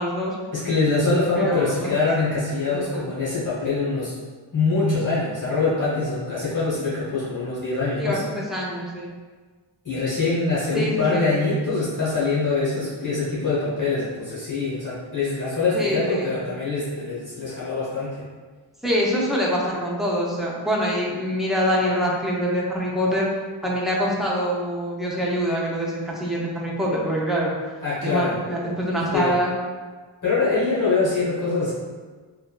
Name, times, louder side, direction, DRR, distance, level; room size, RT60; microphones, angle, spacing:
voice 1, 0.0-0.3 1.4-1.9 2.7-3.1 8.0-9.1 10.7-11.3 15.7-16.3 18.8-23.3 23.6-27.5 28.0-29.5 30.4-30.6, equal, ahead, -5 dB, 0.5 m, -25 dB
voice 2, 0.5-4.1 4.5-8.2 9.8-18.2 27.8-28.3 29.1-29.3 30.2-31.7, left 3 dB, 40° left, -9 dB, 1.0 m, -24 dB
3.2 x 2.3 x 2.2 m, 1.4 s
wide cardioid pair, 70°, 47 cm